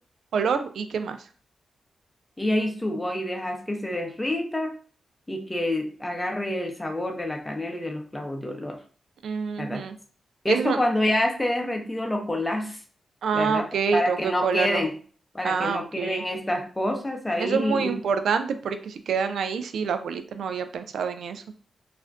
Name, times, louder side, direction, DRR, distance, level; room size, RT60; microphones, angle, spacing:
voice 1, 0.3-1.2 9.2-10.0 10.5-10.8 13.2-14.8 15.4-16.2 17.4-21.4, right 6 dB, 80° right, 9 dB, 0.3 m, -27 dB
voice 2, 2.4-4.7 5.3-8.8 9.6-9.9 10.4-12.8 13.3-14.9 15.3-17.9, left 1 dB, 15° left, 3 dB, 0.7 m, -27 dB
2.4 x 2.1 x 3.4 m, 0.41 s
cardioid pair, 70°, 0 cm